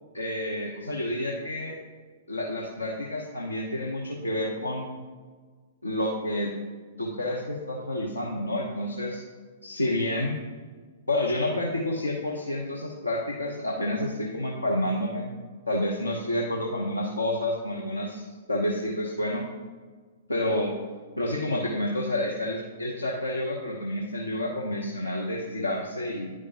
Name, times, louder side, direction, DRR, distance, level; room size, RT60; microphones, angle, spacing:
voice 1, 0.1-1.8 2.3-4.9 5.8-6.5 7.0-9.2 9.6-10.4 11.1-15.3 15.7-19.4 20.3-20.7 21.2-26.3, left 1 dB, 80° left, -2 dB, 0.8 m, -29 dB
10.5 x 4.9 x 2.9 m, 1.5 s
figure-of-eight pair, 110°, 0 cm